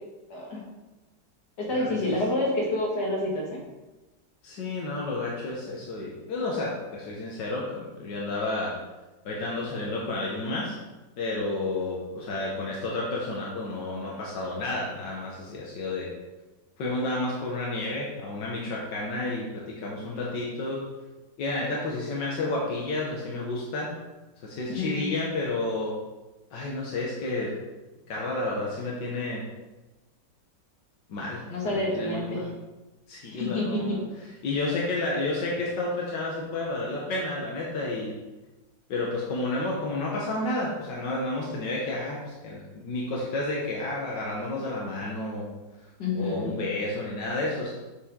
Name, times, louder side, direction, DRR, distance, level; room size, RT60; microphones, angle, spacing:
voice 1, 0.3-0.6 1.6-3.6 24.7-25.2 31.5-32.5 33.3-34.0 46.0-46.5, left 2 dB, 70° left, -3 dB, 2.5 m, -28 dB
voice 2, 1.7-2.2 4.4-8.7 9.3-10.8 11.2-16.1 16.8-20.8 21.4-23.9 24.4-25.9 26.5-27.5 28.1-29.4 31.1-32.5 33.1-34.0 34.4-38.1 38.9-45.5 46.2-47.7, left 2 dB, 90° left, -4 dB, 1.8 m, -31 dB
7.3 x 6.8 x 3.7 m, 1.1 s
omnidirectional pair, 1.9 m